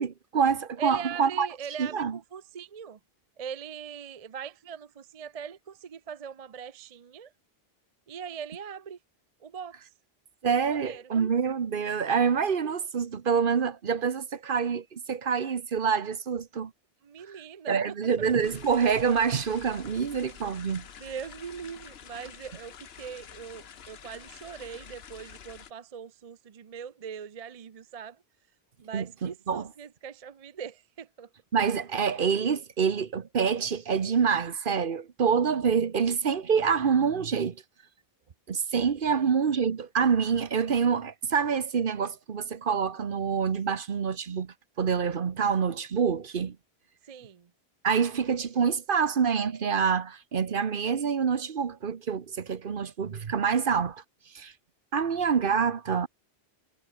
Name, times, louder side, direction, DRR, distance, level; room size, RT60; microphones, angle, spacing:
voice 1, 0.0-1.5 1.8-2.2 10.4-16.7 17.7-20.9 28.9-29.7 31.5-37.6 38.5-46.6 47.8-54.0 54.3-54.5 54.9-56.1, right 6 dB, 55° right, 1.1 m, -26 dB
voice 2, 0.8-3.0 3.4-7.3 8.1-9.0 9.4-9.9 10.7-11.1 17.0-17.8 21.0-28.2 28.8-31.3 39.1-39.3 47.0-47.5, right 7 dB, 40° right, 0.6 m, -41 dB
sound 1, 18.4-25.7, left 8 dB, 75° left, 1.2 m, -48 dB
omnidirectional pair, 1.1 m